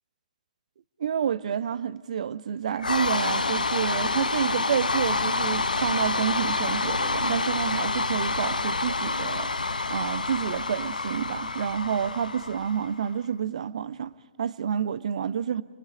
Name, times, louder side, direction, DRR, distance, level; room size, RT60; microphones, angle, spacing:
voice 1, 1.0-9.5 9.9-15.6, right 8 dB, 55° right, 0.8 m, -29 dB
sound 1, 2.8-13.1, left 3 dB, 80° left, 0.8 m, -28 dB
28.5 x 23.0 x 5.1 m
figure-of-eight pair, 125°, 4 cm